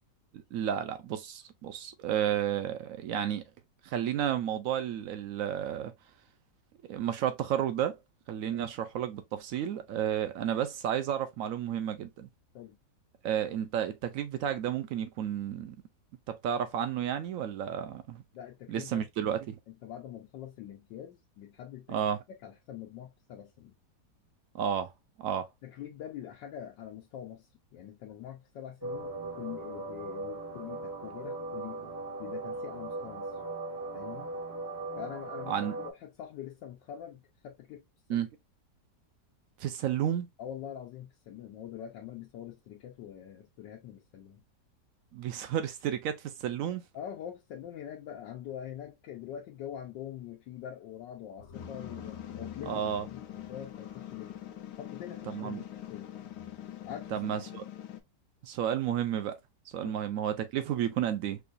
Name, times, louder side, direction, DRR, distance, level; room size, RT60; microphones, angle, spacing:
voice 1, 0.3-3.4 3.8-5.9 6.9-8.0 8.3-12.3 13.2-15.8 16.3-18.2 18.7-19.6 21.9-22.2 24.5-24.9 25.2-25.5 35.5-35.8 38.1-38.3 39.6-40.3 45.1-46.8 52.7-53.1 55.3-55.6 57.1-57.6 58.4-59.4 59.7-61.4, right 9 dB, 70° right, 0.8 m, -32 dB
voice 2, 18.3-19.1 19.7-22.0 22.4-23.7 25.6-31.9 32.2-33.3 33.9-34.3 35.0-37.8 38.1-38.3 40.4-44.4 46.9-52.8 53.1-54.4 54.8-56.1 56.8-57.5 59.8-60.0, left 10 dB, 90° left, 1.4 m, -44 dB
sound 1, 28.8-35.9, right 2 dB, 30° right, 0.3 m, -39 dB
sound 2, 51.4-57.1, left 4 dB, 50° left, 0.9 m, -53 dB
sound 3, 51.5-58.0, left 11 dB, 75° left, 1.2 m, -43 dB
4.8 x 2.3 x 2.5 m
omnidirectional pair, 1.9 m